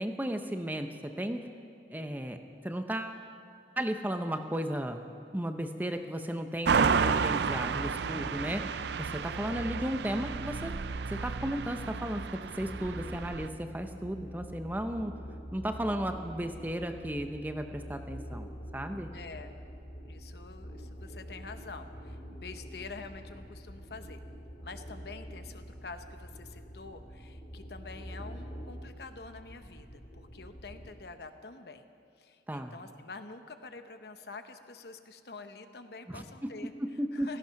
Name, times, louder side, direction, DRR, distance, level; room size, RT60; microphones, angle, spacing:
voice 1, 0.0-1.5 1.9-2.4 2.6-3.2 3.8-5.0 5.3-8.7 9.0-10.7 11.1-15.1 15.5-19.1 32.5-32.7 36.1-37.4, equal, 10° right, 6 dB, 0.6 m, -35 dB
sound 1, 6.6-13.5, right 5 dB, 70° right, 0.4 m, -31 dB
sound 2, 12.5-30.9, equal, 45° left, 4.4 m, -45 dB
voice 2, 19.1-19.6 20.0-24.2 24.6-31.9 32.2-36.7 37.1-37.4, left 4 dB, 60° left, 8 dB, 0.9 m, -47 dB
16.5 x 15.0 x 5.8 m, 2.5 s
head